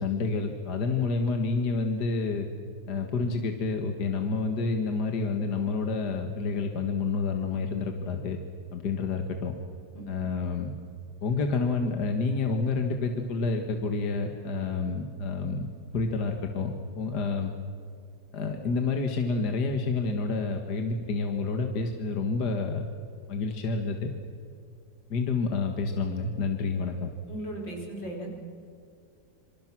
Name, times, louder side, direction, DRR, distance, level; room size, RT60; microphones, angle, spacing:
voice 1, 0.0-2.5 2.9-8.4 8.7-9.5 10.1-10.7 11.2-15.7 15.9-17.5 18.3-22.8 23.3-24.1 25.1-27.1, left 4 dB, 65° left, 4 dB, 2.2 m, -29 dB
voice 2, 27.3-28.3, right 1 dB, 90° left, 0 dB, 5.6 m, -37 dB
27.0 x 25.5 x 6.1 m, 2.4 s
omnidirectional pair, 1.9 m